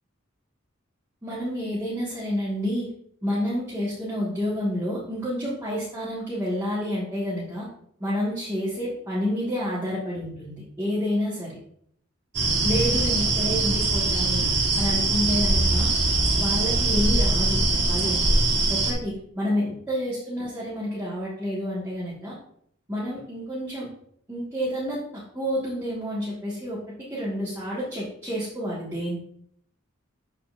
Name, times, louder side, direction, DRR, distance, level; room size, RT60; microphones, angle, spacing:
voice 1, 1.2-2.9 3.2-7.7 8.0-11.6 12.6-14.5 14.8-15.9 16.4-18.4 18.7-22.4 22.9-23.9 24.3-26.8 27.1-29.2, equal, 15° right, -9 dB, 1.7 m, -29 dB
sound 1, 12.3-18.9, right 2 dB, 55° right, 1.6 m, -22 dB
12.0 x 4.2 x 2.6 m, 0.66 s
head